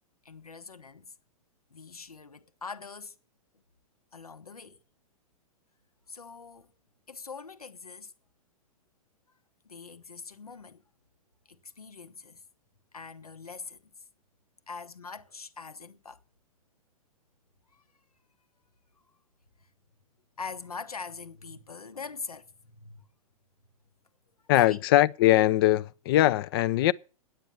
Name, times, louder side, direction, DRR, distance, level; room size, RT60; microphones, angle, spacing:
voice 1, 0.2-1.1 1.7-3.1 4.1-4.8 6.1-6.7 7.1-8.1 9.6-10.8 11.5-12.4 12.9-13.8 14.7-16.2 17.7-17.8 20.4-23.0 24.5-24.8, left 5 dB, 80° left, 1.1 m, -43 dB
voice 2, 24.5-26.9, left 15 dB, 40° left, 0.5 m, -21 dB
9.5 x 8.9 x 6.9 m
figure-of-eight pair, 105°, 19 cm